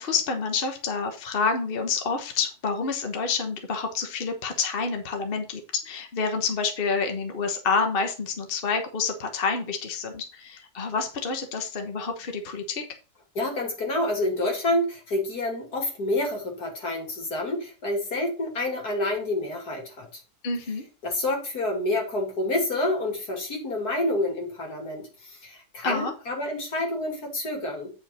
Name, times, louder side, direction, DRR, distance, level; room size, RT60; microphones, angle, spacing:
voice 1, 0.0-12.8 20.4-20.8 25.8-26.1, left 5 dB, 35° left, 5 dB, 1.2 m, -28 dB
voice 2, 13.3-20.2 21.0-27.9, left 1 dB, 70° left, 1 dB, 3.1 m, -28 dB
9.0 x 5.9 x 4.2 m, 0.34 s
omnidirectional pair, 1.7 m